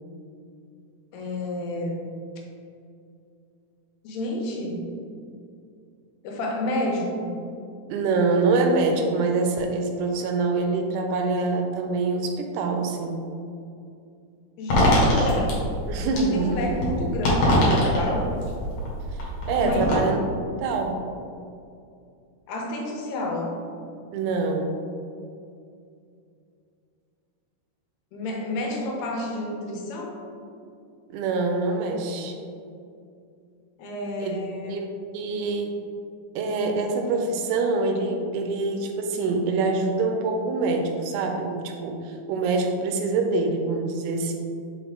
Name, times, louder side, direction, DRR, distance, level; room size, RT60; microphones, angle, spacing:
voice 1, 1.1-2.1 4.0-4.8 6.2-7.3 14.6-15.6 16.1-18.3 19.6-20.0 22.5-23.5 28.1-30.2 33.8-34.8, left 1 dB, 90° left, -1 dB, 2.8 m, -30 dB
voice 2, 7.9-13.2 15.9-16.8 19.2-20.2 20.6-21.0 24.1-24.7 31.1-32.4 34.2-34.4 34.7-35.7 36.4-44.4, right 3 dB, 85° right, 3 dB, 2.7 m, -25 dB
sound 1, 14.7-20.0, left 1 dB, 55° left, 2.1 m, -23 dB
6.0 x 4.5 x 3.6 m, 2.5 s
omnidirectional pair, 4.5 m